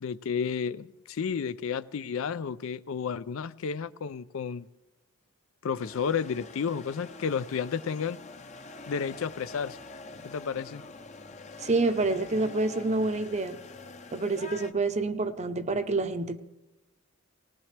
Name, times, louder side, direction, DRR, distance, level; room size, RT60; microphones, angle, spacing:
voice 1, 0.0-4.7 5.6-8.2 8.9-9.8 10.2-10.8, left 6 dB, 65° left, 0.4 m, -32 dB
sound 1, 5.8-14.7, left 3 dB, 35° left, 0.7 m, -45 dB
voice 2, 11.6-13.6 14.1-16.4, right 3 dB, 30° right, 0.7 m, -27 dB
19.5 x 19.5 x 3.3 m
head